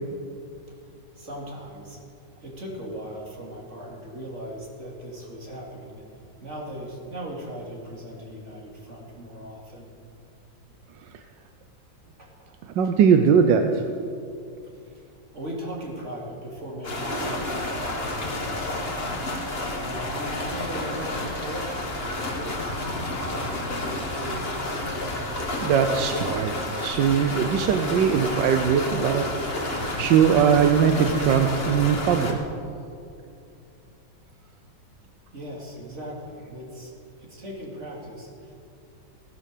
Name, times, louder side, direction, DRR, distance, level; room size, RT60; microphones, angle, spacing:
voice 1, 1.1-2.0 2.4-6.0 6.4-9.9 12.2-12.3 14.6-15.0 15.3-18.8 19.7-24.5 33.8-33.9 34.2-34.3 35.3-36.9 37.2-38.5, equal, 40° right, -2 dB, 3.1 m, -38 dB
voice 2, 12.7-13.8 25.6-26.5 26.8-29.3 29.5-32.4, right 7 dB, 90° right, 6 dB, 1.5 m, -21 dB
sound 1, 16.8-32.3, left 1 dB, 35° left, 2.0 m, -30 dB
17.0 x 11.0 x 6.7 m, 2.5 s
omnidirectional pair, 1.9 m